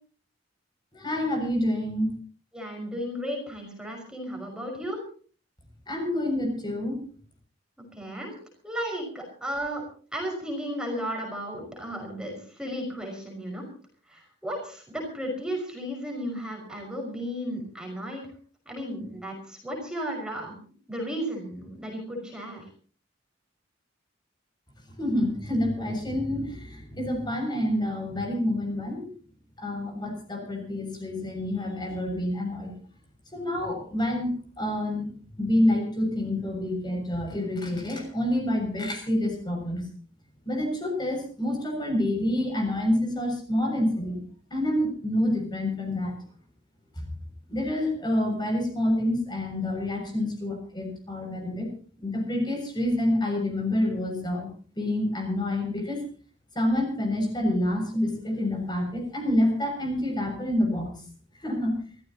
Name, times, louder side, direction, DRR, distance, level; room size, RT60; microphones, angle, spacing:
voice 1, 0.9-2.1 5.9-7.0 25.0-29.1 29.6-32.7 33.3-35.1 35.4-39.9 40.5-44.2 44.5-46.2 47.0-47.1 47.5-51.7 52.0-54.5 54.8-56.0 56.6-60.9 61.4-61.7, left 1 dB, 25° left, 3 dB, 7.0 m, -27 dB
voice 2, 2.5-5.0 7.9-8.4 8.6-9.8 10.1-13.6 14.1-18.2 18.7-20.6 20.9-22.6, equal, 5° right, 1 dB, 5.7 m, -34 dB
28.5 x 15.0 x 3.0 m, 0.41 s
head